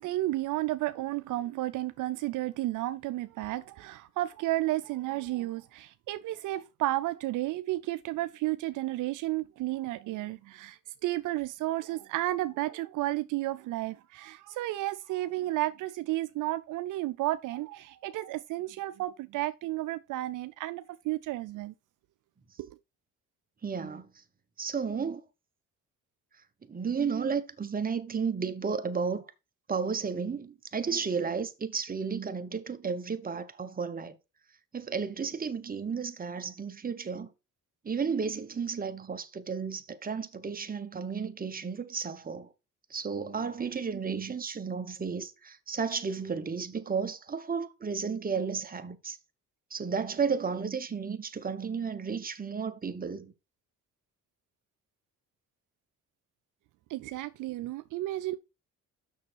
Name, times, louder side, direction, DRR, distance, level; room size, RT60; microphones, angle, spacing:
voice 1, 0.0-21.7 22.6-22.7 56.9-58.4, right 16 dB, 75° right, 0.5 m, -32 dB
voice 2, 23.6-24.1 24.6-25.2 26.6-29.3 29.7-34.2 34.7-37.3 37.8-42.5 42.9-49.2 49.7-53.3, right 5 dB, 30° right, 1.2 m, -33 dB
6.7 x 6.3 x 4.5 m
supercardioid pair, 75°, 31 cm